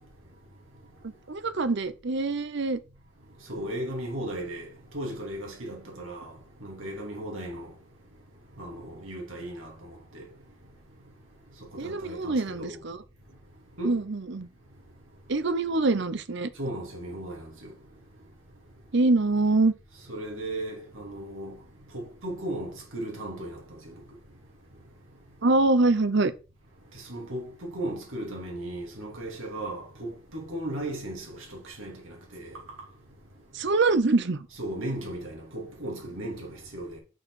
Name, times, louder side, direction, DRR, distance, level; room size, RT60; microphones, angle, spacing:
voice 1, 1.3-2.8 11.8-13.0 13.8-14.5 15.3-16.5 18.9-19.7 25.4-26.3 33.5-34.5, right 3 dB, 55° right, 0.7 m, -24 dB
voice 2, 3.5-4.7 4.9-6.3 6.6-7.7 8.6-10.2 11.8-12.8 13.8-14.0 16.6-17.7 20.1-21.6 21.9-23.6 26.9-32.0 32.3-32.5 34.6-37.0, right 1 dB, 70° right, 3.0 m, -36 dB
6.3 x 4.8 x 6.3 m
head